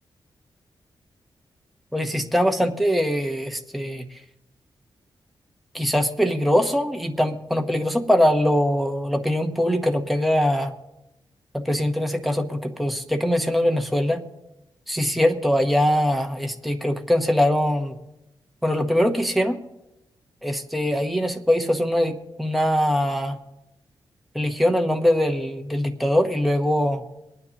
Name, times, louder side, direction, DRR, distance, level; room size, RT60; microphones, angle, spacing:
voice 1, 1.9-4.0 5.7-10.7 11.5-14.2 14.9-18.0 18.6-19.6 20.4-23.4 24.3-27.0, equal, ahead, 5 dB, 1.0 m, -22 dB
24.5 x 9.5 x 2.9 m, 0.93 s
wide cardioid pair, 140°, 9 cm